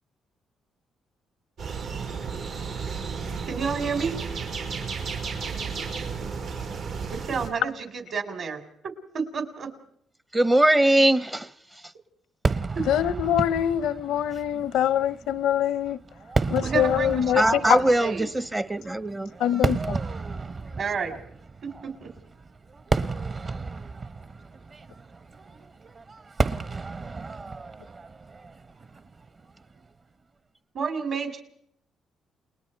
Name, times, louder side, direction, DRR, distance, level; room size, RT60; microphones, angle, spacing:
sound 1, 1.6-7.5, right 5 dB, 80° right, 4.9 m, -33 dB
voice 1, 3.4-4.2 7.2-8.6 9.1-9.7 12.7-12.9 16.6-18.2 20.8-21.1 21.6-22.1 30.7-31.4, right 5 dB, 60° right, 4.2 m, -30 dB
voice 2, 10.3-11.5 17.4-19.3, right 1 dB, 20° right, 0.7 m, -21 dB
Fireworks, 12.4-29.8, right 4 dB, 40° right, 1.1 m, -32 dB
voice 3, 12.9-16.0 16.5-17.8 19.4-20.0, left 10 dB, 85° left, 0.7 m, -24 dB
30.0 x 20.5 x 4.6 m
cardioid pair, 90°, 0 cm